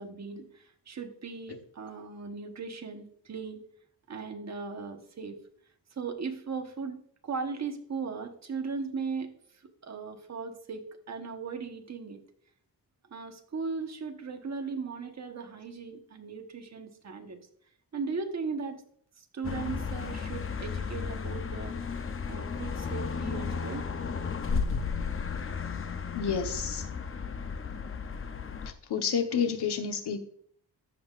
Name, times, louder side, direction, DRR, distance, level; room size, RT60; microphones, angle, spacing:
voice 1, 0.0-3.6 4.1-5.4 5.9-9.3 9.8-12.2 13.1-17.4 17.9-18.8 19.2-21.7 22.3-23.8, right 5 dB, 45° right, 4 dB, 1.1 m, -37 dB
sound 1, 19.4-28.7, left 5 dB, 35° left, 0.6 m, -34 dB
voice 2, 26.1-26.9 28.7-30.2, left 6 dB, 85° left, 6 dB, 1.2 m, -30 dB
14.5 x 5.5 x 2.4 m, 0.63 s
wide cardioid pair, 170°, 39 cm